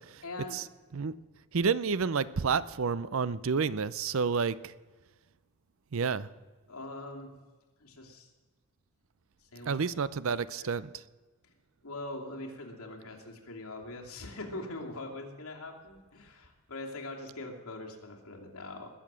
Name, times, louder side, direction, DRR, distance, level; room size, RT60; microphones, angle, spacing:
voice 1, 0.2-0.6 6.7-7.4 7.8-8.3 9.4-9.8 10.2-10.7 11.4-11.5 11.8-18.9, left 2 dB, 80° left, 0 dB, 2.7 m, -42 dB
voice 2, 1.5-4.7 5.9-6.3 9.7-10.9, right 5 dB, 65° right, 18 dB, 0.5 m, -29 dB
20.5 x 7.1 x 7.5 m, 1.3 s
head